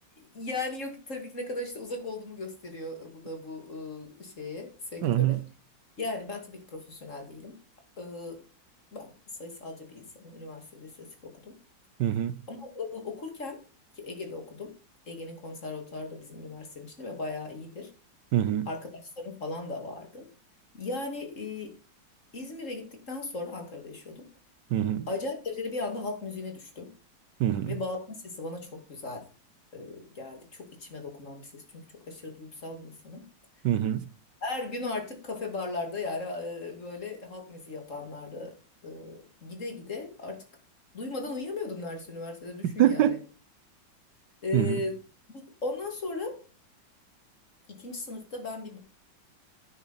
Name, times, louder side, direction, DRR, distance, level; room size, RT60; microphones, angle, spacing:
voice 1, 0.2-5.4 6.0-7.5 8.0-8.4 8.9-9.1 9.4-11.5 12.5-13.6 14.0-14.7 15.1-17.9 18.7-20.3 20.7-21.7 22.3-24.2 25.1-26.9 27.7-28.0 28.3-29.2 29.7-33.2 34.4-38.5 38.8-40.4 40.9-43.2 44.4-45.0 45.3-46.4 47.7-48.8, left 3 dB, 40° left, 2.8 m, -37 dB
voice 2, 5.0-5.4 12.0-12.4 18.3-18.7 24.7-25.1 27.4-27.7 33.6-34.1 42.6-43.2 44.5-44.8, right 11 dB, 75° right, 1.3 m, -24 dB
9.8 x 9.5 x 4.2 m
omnidirectional pair, 2.0 m